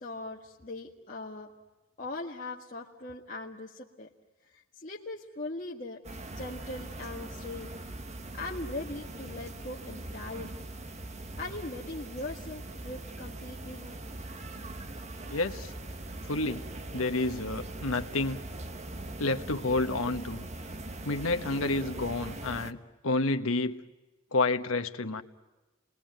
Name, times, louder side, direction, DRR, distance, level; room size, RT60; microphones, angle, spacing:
voice 1, 0.0-1.5 2.0-4.1 4.5-6.0 6.3-7.7 8.4-10.5 11.4-14.0, left 2 dB, 40° left, -4 dB, 1.8 m, -40 dB
sound 1, 6.0-22.7, right 2 dB, 35° right, 1.2 m, -41 dB
voice 2, 15.3-15.7 16.2-16.7 16.9-18.4 19.2-20.4 21.0-22.8 23.0-23.8 24.3-25.2, left 2 dB, 85° left, 8 dB, 1.3 m, -29 dB
29.5 x 21.5 x 9.2 m, 1.2 s
head